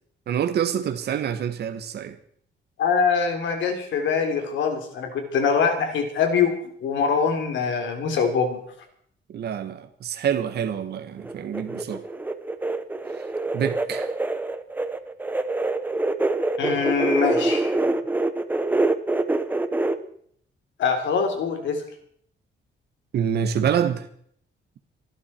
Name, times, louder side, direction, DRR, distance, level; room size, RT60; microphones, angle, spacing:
voice 1, 0.3-2.1 9.3-12.0 13.5-14.1 23.1-24.1, right 8 dB, 55° right, 9 dB, 1.3 m, -26 dB
voice 2, 2.8-8.6 16.6-17.7 20.8-21.8, left 5 dB, 70° left, 5 dB, 3.5 m, -23 dB
sound 1, 11.2-20.0, right 2 dB, 10° right, 0.8 m, -25 dB
25.5 x 12.0 x 4.4 m, 0.63 s
cardioid pair, 180°, 20 cm